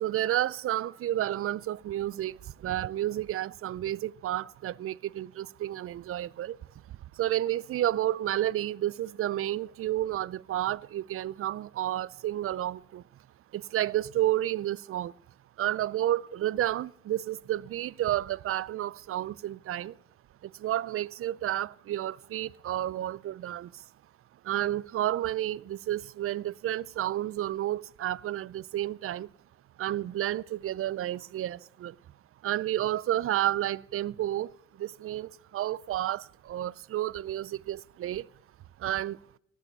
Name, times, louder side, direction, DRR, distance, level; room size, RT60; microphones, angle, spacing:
voice 1, 0.0-2.4 2.6-6.6 7.2-13.0 13.5-15.1 15.6-19.9 20.6-23.7 24.5-29.3 29.8-31.9 32.4-34.5 34.8-38.2 38.8-39.2, right 13 dB, 50° right, 0.4 m, -31 dB
12.0 x 8.5 x 9.2 m
cardioid pair, 90°, 30 cm